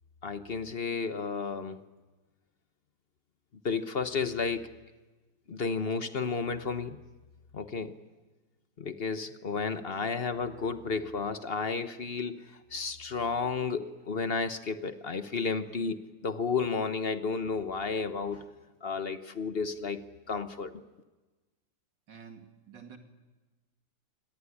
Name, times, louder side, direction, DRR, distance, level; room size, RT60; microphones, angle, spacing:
voice 1, 0.2-1.8 3.6-4.7 5.5-7.0 7.5-7.9 8.8-12.4 12.7-18.4 18.8-20.0 20.3-20.7, left 5 dB, 40° left, 10 dB, 1.0 m, -32 dB
voice 2, 22.1-23.0, right 6 dB, 70° right, 4 dB, 3.1 m, -49 dB
25.0 x 18.5 x 9.9 m, 1.2 s
omnidirectional pair, 2.0 m